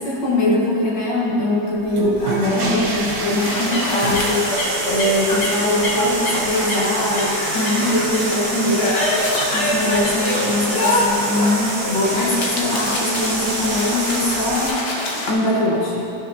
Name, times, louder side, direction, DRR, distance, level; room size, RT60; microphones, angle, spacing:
voice 1, 0.0-16.1, left 1 dB, 65° left, -6 dB, 2.1 m, -22 dB
sound 1, 1.8-14.7, right 3 dB, 60° right, 1.5 m, -27 dB
sound 2, 3.4-15.3, left 1 dB, 45° left, 0.8 m, -24 dB
12.0 x 6.2 x 2.8 m, 2.7 s
omnidirectional pair, 2.2 m